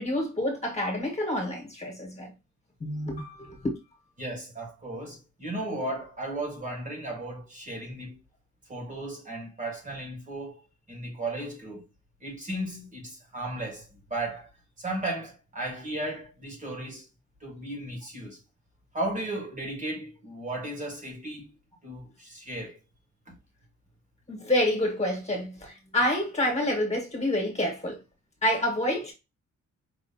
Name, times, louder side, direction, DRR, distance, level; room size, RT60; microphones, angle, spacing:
voice 1, 0.0-2.3 2.8-3.8 24.3-28.0 28.4-29.1, left 1 dB, 20° left, 1.6 m, -28 dB
voice 2, 4.2-8.2 8.7-11.9 12.2-14.5 14.8-17.1 17.4-18.4 18.9-21.6 21.8-22.8 23.3-23.4, right 1 dB, 25° right, 1.5 m, -35 dB
5.3 x 3.0 x 2.8 m
wide cardioid pair, 170°, 30 cm